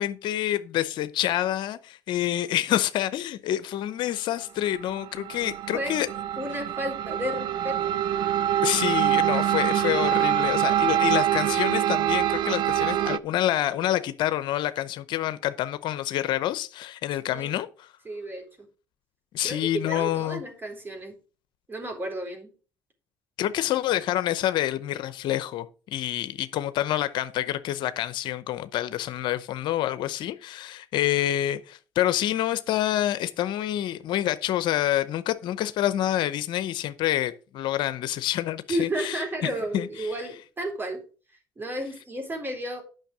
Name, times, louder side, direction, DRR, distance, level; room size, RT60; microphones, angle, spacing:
voice 1, 0.0-6.1 8.6-17.9 19.3-20.4 23.4-25.7 25.9-40.2, left 13 dB, 70° left, 0.7 m, -27 dB
sound 1, 4.7-13.2, right 11 dB, 65° right, 0.5 m, -25 dB
voice 2, 6.4-7.8 17.3-17.6 18.1-18.4 19.4-21.2 21.7-22.5 38.7-41.0 41.6-42.8, right 1 dB, 25° right, 3.8 m, -32 dB
9.1 x 6.0 x 4.9 m
supercardioid pair, 75°, 8 cm